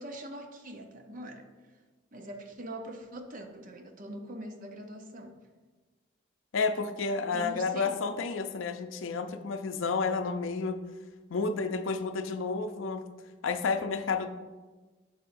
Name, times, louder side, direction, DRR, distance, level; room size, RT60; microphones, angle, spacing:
voice 1, 0.0-1.8 2.1-5.5 7.2-8.1, right 1 dB, 40° right, 5 dB, 0.6 m, -43 dB
voice 2, 6.5-10.8 11.3-13.0 13.4-14.3, left 4 dB, 80° left, 7 dB, 0.5 m, -30 dB
7.7 x 5.6 x 2.6 m, 1.3 s
head